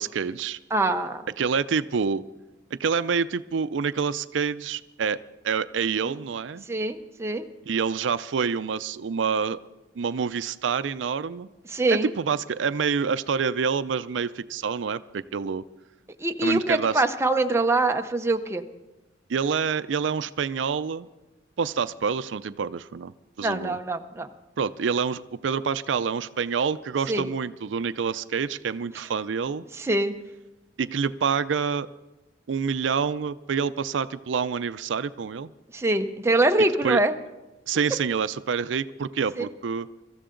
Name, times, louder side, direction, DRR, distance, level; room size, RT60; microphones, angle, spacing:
voice 1, 0.0-0.6 1.4-2.2 2.7-6.7 7.7-9.6 10.0-11.5 11.9-15.6 16.4-17.0 19.3-21.1 21.6-23.1 23.4-23.8 24.6-29.6 30.8-31.9 32.5-35.5 36.8-37.0 37.7-39.9, right 6 dB, 85° right, 15 dB, 0.5 m, -27 dB
voice 2, 0.7-1.2 6.0-6.1 6.7-7.4 11.7-12.1 16.2-18.6 23.4-24.3 27.1-27.3 29.8-30.1 35.7-37.1 39.4-39.5, right 2 dB, 15° right, 6 dB, 0.7 m, -24 dB
24.0 x 14.0 x 3.8 m, 1.1 s
head